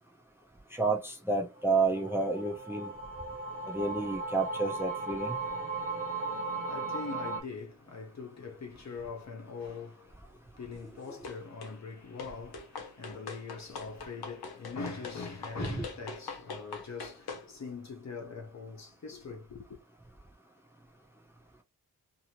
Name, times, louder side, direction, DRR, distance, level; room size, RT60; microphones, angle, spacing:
voice 1, 0.7-2.9 3.7-5.4 15.8-15.9, right 3 dB, 5° right, 0.7 m, -30 dB
sound 1, 1.7-7.4, right 3 dB, 35° right, 1.1 m, -37 dB
voice 2, 5.9-19.8, left 4 dB, 45° left, 0.9 m, -43 dB
sound 2, 11.2-11.8 12.2-17.5, left 4 dB, 80° left, 0.9 m, -43 dB
2.7 x 2.7 x 2.9 m
wide cardioid pair, 125°, 37 cm